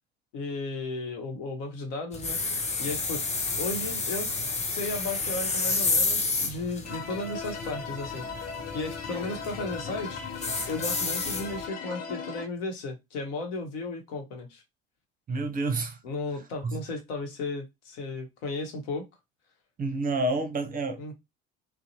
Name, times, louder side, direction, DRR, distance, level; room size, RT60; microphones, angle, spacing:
voice 1, 0.3-2.4 2.8-3.2 3.6-4.3 4.7-8.2 8.7-10.2 10.7-14.6 16.0-19.1 21.0-21.1, left 3 dB, 70° left, 1.0 m, -34 dB
sound 1, 2.1-11.7, left 3 dB, 20° left, 0.7 m, -31 dB
sound 2, 6.8-12.5, left 5 dB, 50° left, 0.9 m, -38 dB
voice 2, 15.3-16.0 16.6-16.8 19.8-21.0, right 2 dB, 25° right, 0.6 m, -29 dB
2.5 x 2.0 x 2.8 m
hypercardioid pair, 70°, 31 cm